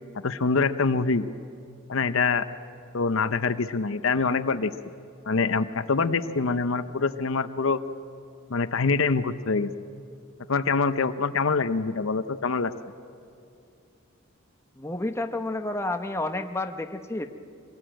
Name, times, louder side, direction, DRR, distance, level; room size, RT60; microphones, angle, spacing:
voice 1, 0.2-1.3 1.9-2.5 2.9-4.7 5.3-7.8 8.5-9.7 10.5-12.7, left 4 dB, 65° left, 11 dB, 0.7 m, -25 dB
voice 2, 14.8-17.3, left 2 dB, 15° left, 6 dB, 0.9 m, -30 dB
24.5 x 19.0 x 8.9 m, 2.5 s
head